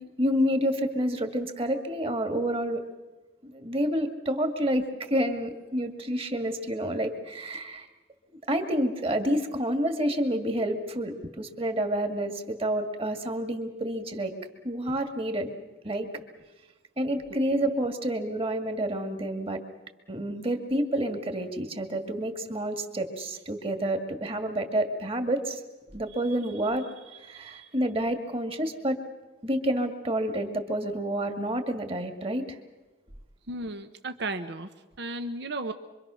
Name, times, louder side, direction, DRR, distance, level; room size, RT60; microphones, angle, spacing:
voice 1, 0.0-2.8 3.4-7.9 8.5-14.3 14.6-15.5 15.8-16.1 17.0-19.6 20.1-25.6 25.9-26.9 27.1-29.0 29.4-32.6, right 1 dB, 30° right, 6 dB, 2.1 m, -29 dB
voice 2, 17.3-17.7 33.5-34.7 35.0-35.7, right 2 dB, 60° right, 8 dB, 1.0 m, -34 dB
25.5 x 24.5 x 6.4 m, 1.2 s
head